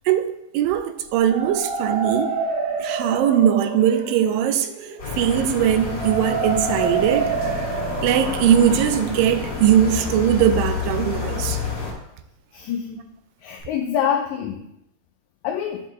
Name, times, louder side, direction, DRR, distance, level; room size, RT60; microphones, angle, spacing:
voice 1, 0.1-2.4 2.8-4.7 5.2-7.3 8.0-11.6, right 10 dB, 90° right, 10 dB, 2.3 m, -20 dB
sound 1, 1.0-10.9, right 4 dB, 75° right, 2.9 m, -29 dB
sound 2, 5.0-11.9, left 5 dB, 40° left, 2.1 m, -29 dB
voice 2, 12.5-13.0 13.4-14.6 15.4-15.8, left 9 dB, 85° left, 3 dB, 1.7 m, -25 dB
10.5 x 4.1 x 3.0 m, 0.82 s
omnidirectional pair, 3.9 m